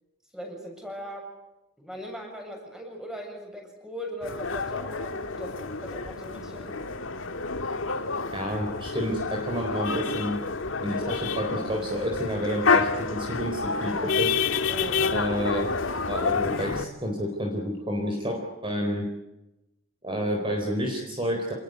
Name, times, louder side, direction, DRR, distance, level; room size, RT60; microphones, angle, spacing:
voice 1, 0.3-1.3 1.8-6.9 14.7-15.2, equal, 5° right, 2 dB, 7.2 m, -39 dB
sound 1, 4.2-16.8, left 4 dB, 70° left, 1.9 m, -29 dB
voice 2, 8.3-10.4 10.8-14.4 15.1-15.6 16.1-19.1 20.0-21.5, equal, 25° right, 1 dB, 4.2 m, -29 dB
28.0 x 21.0 x 8.2 m, 0.96 s
head